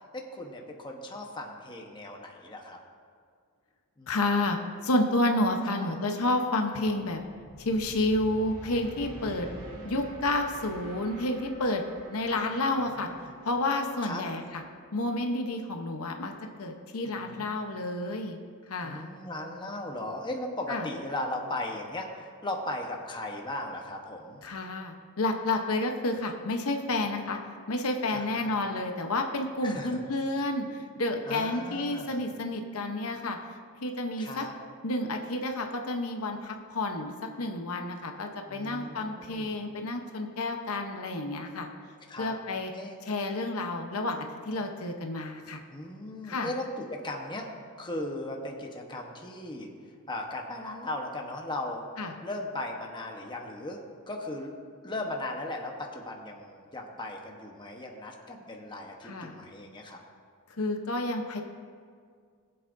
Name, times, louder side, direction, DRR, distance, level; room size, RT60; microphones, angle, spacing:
voice 1, 0.1-2.8 4.0-4.1 5.8-6.0 9.2-10.1 13.1-13.3 14.0-14.2 17.0-17.5 18.8-24.4 28.1-28.5 29.6-30.0 31.3-32.2 34.2-34.5 38.5-39.5 42.1-42.3 42.7-43.1 45.7-47.5 47.8-49.7 50.1-51.9 52.2-54.5 54.8-60.0, left 1 dB, 20° left, 1 dB, 1.0 m, -37 dB
voice 2, 4.1-4.6 4.8-7.2 7.6-9.5 9.8-11.8 12.1-13.1 13.4-14.6 14.9-16.3 16.6-18.4 18.7-19.1 20.7-20.9 24.4-27.4 27.7-33.4 33.8-34.5 34.8-37.1 37.4-41.7 42.2-42.7 43.1-45.6 46.2-46.5 52.0-52.1 59.0-59.4 60.6-61.4, left 2 dB, 75° left, 4 dB, 0.9 m, -30 dB
sound 1, 6.9-15.9, equal, 80° right, 2.7 m, -47 dB
21.5 x 7.9 x 2.6 m, 2.1 s
head